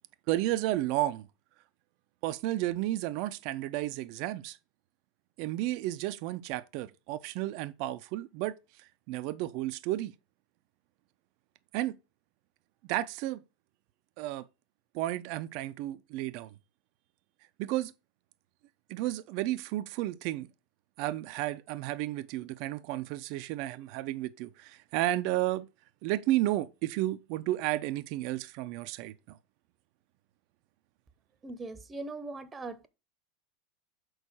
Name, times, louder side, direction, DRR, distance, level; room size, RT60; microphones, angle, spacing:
voice 1, 0.3-1.2 2.2-4.6 5.4-8.5 9.1-10.1 11.7-12.0 12.8-13.4 14.2-14.5 14.9-16.5 17.6-17.9 18.9-20.5 21.0-25.7 26.0-29.4, right 15 dB, 55° right, 0.4 m, -32 dB
voice 2, 31.4-32.9, right 3 dB, 20° right, 0.8 m, -40 dB
6.3 x 4.6 x 4.6 m
figure-of-eight pair, 85°, 0 cm